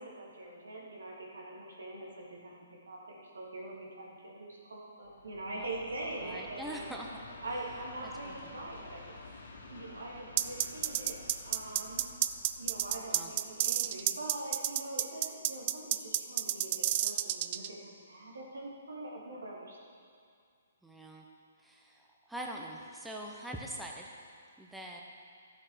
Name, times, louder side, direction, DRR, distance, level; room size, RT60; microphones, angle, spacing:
voice 1, 0.0-6.8 7.4-9.2 9.7-11.2 11.4-12.0 12.6-19.8, right 2 dB, 90° right, -4 dB, 2.9 m, -43 dB
Train, 5.0-14.3, left 3 dB, 75° left, 2.8 m, -51 dB
voice 2, 6.2-7.1 8.0-8.5 13.1-13.3 20.8-21.2 21.6-24.2 24.6-25.0, right 1 dB, 5° right, -1 dB, 0.8 m, -43 dB
sound 1, 10.4-17.7, right 14 dB, 40° right, 0.4 m, -30 dB
13.0 x 7.3 x 5.0 m, 2.3 s
hypercardioid pair, 145°, 0 cm